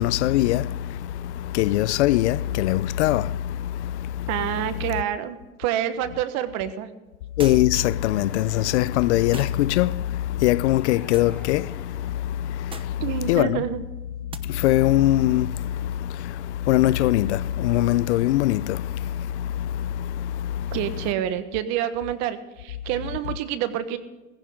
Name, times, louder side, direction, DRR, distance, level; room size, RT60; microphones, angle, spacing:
voice 1, 0.0-4.3 4.8-4.9 7.4-13.6 14.4-20.8, left 14 dB, 75° left, 0.6 m, -23 dB
voice 2, 4.3-6.9 13.0-13.8 20.7-24.0, right 11 dB, 50° right, 1.4 m, -27 dB
sound 1, 7.4-7.9 9.3-9.7 11.1-11.4 12.7-13.0 14.3-14.5, right 5 dB, 15° right, 0.8 m, -40 dB
sound 2, 7.8-9.4 10.7-12.3, left 1 dB, 5° left, 3.6 m, -47 dB
15.5 x 15.5 x 3.8 m
hypercardioid pair, 115°, 34 cm